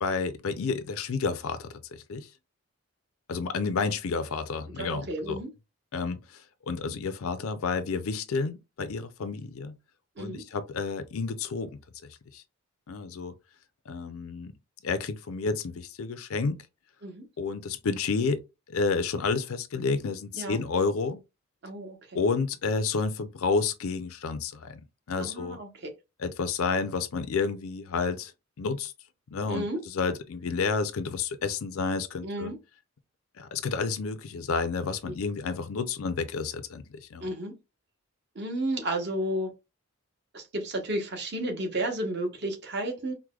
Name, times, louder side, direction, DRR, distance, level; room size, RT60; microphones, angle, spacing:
voice 1, 0.0-2.3 3.3-5.4 5.9-6.2 6.7-9.7 10.2-11.7 12.3-12.4 12.9-13.3 13.9-14.5 14.8-16.6 17.4-18.4 18.7-21.2 22.1-25.6 26.2-28.3 28.6-28.9 29.3-32.5 33.4-36.8 37.1-37.3, left 4 dB, 75° left, 0.5 m, -30 dB
voice 2, 4.8-5.5 10.2-10.4 17.0-17.3 20.3-20.6 21.6-22.2 25.2-25.9 29.5-29.8 32.2-32.6 35.1-35.2 37.2-37.6 38.3-39.5 40.3-43.1, right 1 dB, 50° right, 0.9 m, -32 dB
4.6 x 2.1 x 2.3 m
head